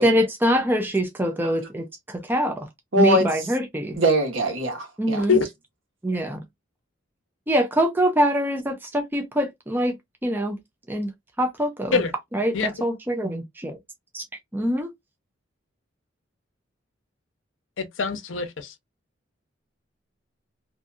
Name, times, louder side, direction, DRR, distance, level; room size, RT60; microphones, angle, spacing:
voice 1, 0.0-2.7 3.0-4.0 5.0-5.4 6.0-6.4 7.5-9.9 10.2-10.6 10.9-11.1 11.4-12.0 12.3-13.8 14.1-14.2 14.5-14.9, equal, 10° right, 0.5 m, -24 dB
voice 2, 2.9-3.5 3.9-5.3, equal, 85° right, 1.2 m, -22 dB
voice 3, 17.8-18.7, left 5 dB, 75° left, 0.6 m, -23 dB
2.7 x 2.6 x 2.3 m
head